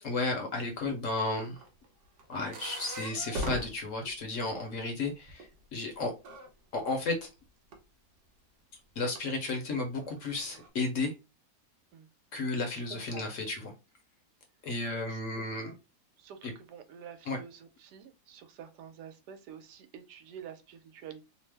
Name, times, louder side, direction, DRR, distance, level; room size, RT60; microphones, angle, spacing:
voice 1, 0.0-1.6 2.3-6.1 6.7-7.3 9.0-11.1 12.3-13.7 14.6-15.7 16.4-16.5 17.3-17.4, left 3 dB, 60° left, 0.9 m, -33 dB
sound 1, 1.2-4.9 5.2-6.5 7.7-7.8 8.9-9.2 9.8-10.7, right 1 dB, 60° right, 0.8 m, -40 dB
voice 2, 12.7-13.2 15.1-15.8 16.2-21.3, right 8 dB, 85° right, 1.2 m, -49 dB
2.9 x 2.0 x 3.3 m
omnidirectional pair, 1.7 m